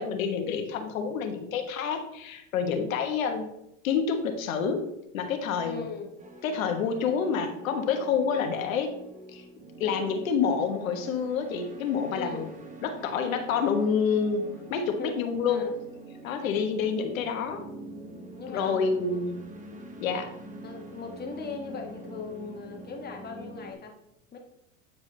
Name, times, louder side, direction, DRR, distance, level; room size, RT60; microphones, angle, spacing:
voice 1, 0.0-3.5 3.8-4.9 5.1-5.9 6.4-8.9 9.3-9.4 9.8-12.5 12.8-15.7 16.2-17.6 18.5-19.6 20.0-20.3, left 6 dB, 85° left, 5 dB, 1.3 m, -28 dB
voice 2, 5.6-6.1 12.1-12.5 15.0-15.2 15.5-15.7 18.3-19.2 20.6-23.9 24.3-24.4, left 4 dB, 25° left, 2 dB, 1.4 m, -39 dB
sound 1, 6.2-23.7, right 2 dB, 20° right, 1.0 m, -45 dB
9.1 x 4.7 x 3.3 m, 0.82 s
hypercardioid pair, 110°, 40 cm